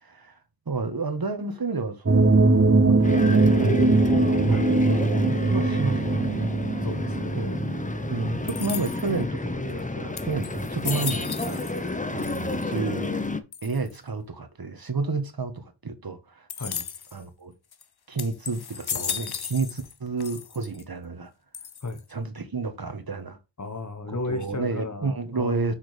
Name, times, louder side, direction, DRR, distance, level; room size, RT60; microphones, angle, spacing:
voice 1, 0.0-0.4 0.7-2.4 2.9-3.9 4.4-6.5 7.3-7.5 8.1-13.1 13.6-16.8 17.1-17.5 18.1-21.3 22.1-23.4 24.1-25.7, right 3 dB, 50° right, 1.5 m, -31 dB
sound 1, 2.1-8.9, right 3 dB, 30° right, 1.1 m, -21 dB
sound 2, 3.0-13.4, left 2 dB, 15° left, 1.0 m, -31 dB
voice 2, 6.8-7.6 8.2-8.3 16.6-16.8 21.8-22.0 23.6-25.7, left 2 dB, 35° left, 1.4 m, -34 dB
sound 3, 8.5-9.2 9.8-9.9 10.2-11.9 12.2-12.8 13.5-14.0 16.5-17.2 17.7-17.8 18.2-19.9 20.2-20.8 21.5-22.1, left 7 dB, 55° left, 0.8 m, -35 dB
6.4 x 5.9 x 3.4 m
cardioid pair, 50°, 47 cm